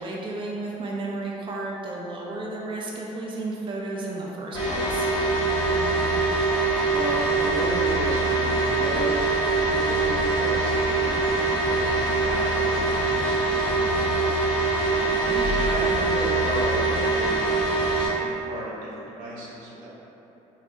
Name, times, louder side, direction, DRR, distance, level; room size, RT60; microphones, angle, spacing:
voice 1, 0.0-5.1 14.9-15.5, right 2 dB, 40° right, -2 dB, 0.5 m, -33 dB
sound 1, 4.5-18.1, right 3 dB, 35° left, 1.3 m, -23 dB
voice 2, 6.9-14.6 15.6-19.9, right 1 dB, 90° right, -5 dB, 0.7 m, -35 dB
4.6 x 2.0 x 2.6 m, 3.0 s
supercardioid pair, 75°, 14 cm